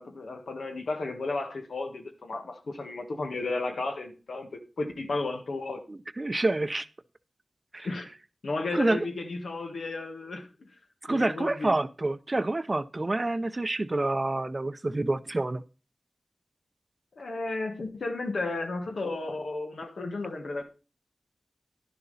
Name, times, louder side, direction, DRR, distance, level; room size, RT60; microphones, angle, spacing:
voice 1, 0.0-5.8 7.8-8.1 8.4-10.5 11.1-11.8 17.2-20.6, left 3 dB, 85° left, 1.5 m, -33 dB
voice 2, 5.9-6.9 7.7-7.9 8.7-9.0 11.0-15.6, right 2 dB, 35° right, 0.6 m, -28 dB
11.5 x 6.9 x 4.0 m
wide cardioid pair, 90°, 0 cm